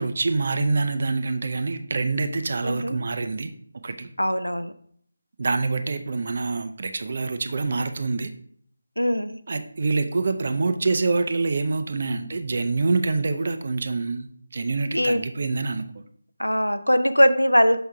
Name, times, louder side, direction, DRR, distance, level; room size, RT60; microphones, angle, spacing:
voice 1, 0.0-3.5 3.8-4.1 5.4-8.3 9.5-16.0, right 3 dB, 45° right, 9 dB, 0.5 m, -26 dB
voice 2, 2.6-3.0 4.2-4.7 9.0-9.4 14.9-15.2 16.4-17.8, equal, 90° left, 11 dB, 0.5 m, -21 dB
5.9 x 5.5 x 3.4 m, 0.62 s
figure-of-eight pair, 160°, 0 cm